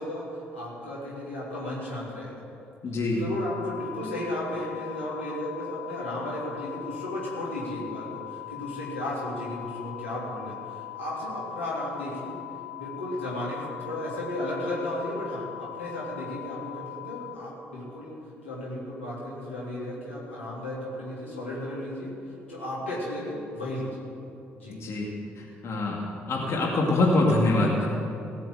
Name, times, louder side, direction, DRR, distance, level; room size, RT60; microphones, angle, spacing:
voice 1, 0.0-2.4 3.1-12.3 12.8-18.1 18.4-22.1 22.5-24.0 24.5-24.7, left 1 dB, 90° left, -8 dB, 3.3 m, -34 dB
voice 2, 2.8-3.2 24.7-25.1 25.4-26.0 26.3-27.9, left 2 dB, 45° left, -2 dB, 2.3 m, -24 dB
sound 1, 3.3-17.4, left 21 dB, 65° left, 1.0 m, -41 dB
17.5 x 6.8 x 7.8 m, 2.8 s
figure-of-eight pair, 50°, 6 cm